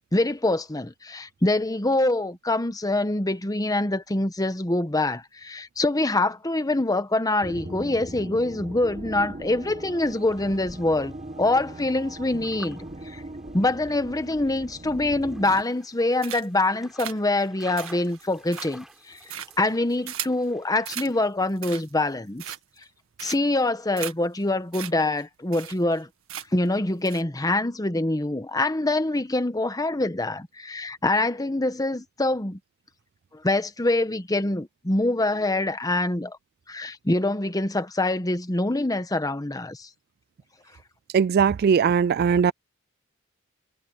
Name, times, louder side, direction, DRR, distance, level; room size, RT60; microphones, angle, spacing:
voice 1, 0.1-13.2 13.5-19.2 19.6-22.4 23.2-26.1 26.5-32.6 33.3-36.4 36.7-39.9, left 2 dB, 15° left, 1.1 m, -25 dB
sound 1, 7.4-15.6, right 1 dB, 35° right, 1.4 m, -40 dB
sound 2, 10.0-21.2, equal, ahead, 5.7 m, -52 dB
sound 3, 15.4-15.9 16.2-16.7 17.0-20.4 20.8-21.1 21.5-22.0 22.4-22.8 23.2-23.6 24.0-24.1 24.4-24.5 24.7-24.9 25.2-25.3 25.5-26.0 26.3-26.7 27.0-27.2, right 11 dB, 75° right, 1.8 m, -37 dB
voice 2, 41.1-42.5, right 6 dB, 50° right, 0.3 m, -20 dB
head